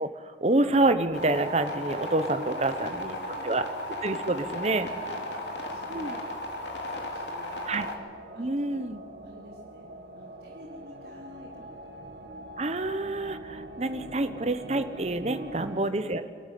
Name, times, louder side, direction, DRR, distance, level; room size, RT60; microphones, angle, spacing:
voice 1, 0.0-3.2 3.4-3.6 4.0-4.9 5.9-6.2 7.7-7.9 8.4-9.0 12.6-16.3, right 2 dB, 35° right, 10 dB, 1.0 m, -27 dB
sound 1, 0.6-15.8, right 1 dB, 85° right, 1.8 m, -44 dB
sound 2, 1.1-7.9, left 1 dB, 85° left, 2.9 m, -36 dB
voice 2, 2.3-3.5 3.9-7.6 8.3-8.9 9.2-9.9 10.1-11.8 15.2-16.3, left 1 dB, 55° right, -5 dB, 3.8 m, -48 dB
26.0 x 13.0 x 8.4 m, 2.2 s
head